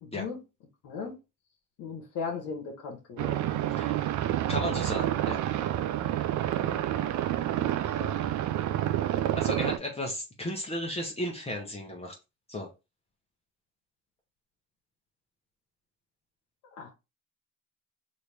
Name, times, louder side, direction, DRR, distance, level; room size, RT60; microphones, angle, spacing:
voice 1, 0.0-0.4 0.8-1.2 1.8-3.5 6.6-6.8 7.5-7.7 8.0-8.2 16.7-16.9, left 5 dB, 80° left, 0.9 m, -38 dB
sound 1, 3.2-9.8, right 12 dB, 75° right, 0.5 m, -28 dB
voice 2, 3.8-4.1 4.5-5.4 9.4-12.1 12.5-12.7, left 1 dB, 20° left, 0.8 m, -34 dB
3.1 x 2.6 x 3.2 m
cardioid pair, 90°, 30 cm